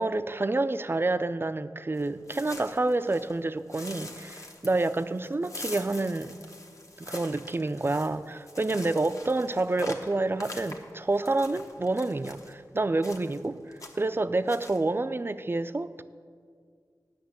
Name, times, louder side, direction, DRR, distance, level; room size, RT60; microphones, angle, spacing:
voice 1, 0.0-6.4 7.0-16.0, right 2 dB, 30° right, 0.4 m, -28 dB
Footsteps Walking Boot Dry Leaves-Fern-Crunch, 2.0-3.4 3.7-12.5 13.0-13.5 13.7-14.1 14.5-14.8, left 2 dB, 45° left, 1.2 m, -44 dB
9.2 x 6.0 x 8.1 m
wide cardioid pair, 55°, 7 cm